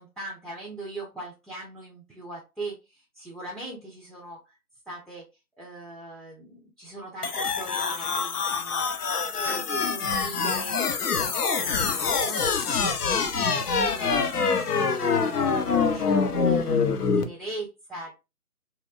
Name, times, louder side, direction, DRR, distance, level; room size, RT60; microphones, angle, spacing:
voice 1, 0.0-4.6 4.9-5.3 5.6-18.1, right 2 dB, ahead, -5 dB, 0.4 m, -41 dB
sound 1, 7.2-17.2, left 5 dB, 85° left, 0.6 m, -25 dB
2.8 x 2.1 x 2.2 m, 0.26 s
figure-of-eight pair, 180°, 45 cm